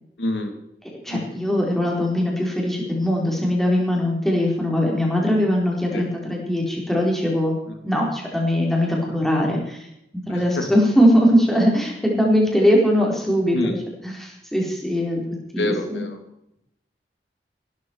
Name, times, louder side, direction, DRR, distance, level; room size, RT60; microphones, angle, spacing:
voice 1, 0.2-0.5 1.1-1.4 5.9-6.1 7.7-7.8 10.3-10.7 13.5-13.8 15.6-16.2, left 1 dB, 90° left, 5 dB, 2.6 m, -27 dB
voice 2, 1.0-7.6 7.8-9.8 10.3-13.8 14.0-15.2 15.5-16.0, equal, ahead, -2 dB, 4.3 m, -21 dB
17.5 x 13.5 x 4.7 m, 0.81 s
head